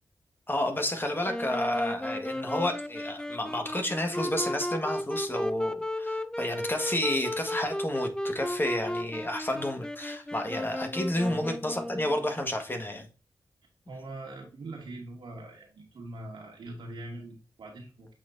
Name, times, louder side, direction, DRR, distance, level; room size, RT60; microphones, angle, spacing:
voice 1, 0.5-13.1, left 1 dB, 25° left, 1.6 m, -30 dB
Wind instrument woodwind instrument, 1.2-12.4, left 1 dB, 10° left, 0.5 m, -35 dB
voice 2, 13.9-18.1, right 2 dB, 80° right, 2.4 m, -42 dB
8.2 x 4.2 x 2.7 m
cardioid pair, 40°, 8 cm